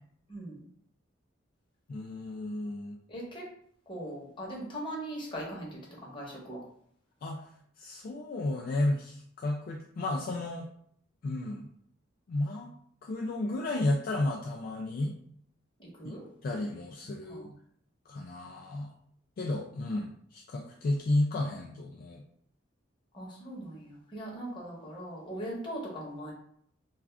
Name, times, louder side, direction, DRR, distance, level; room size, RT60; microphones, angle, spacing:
voice 1, 0.3-0.7 3.1-3.5 3.9-6.6 15.8-16.2 17.3-17.5 23.1-26.3, right 1 dB, 25° left, -4 dB, 0.9 m, -40 dB
voice 2, 1.9-3.0 7.2-7.5 7.8-10.7 11.2-11.7 12.3-12.7 13.0-15.2 16.0-16.2 16.4-17.5 18.1-18.9 19.4-22.2, left 2 dB, 50° left, 0 dB, 0.3 m, -32 dB
2.4 x 2.3 x 3.3 m, 0.65 s
head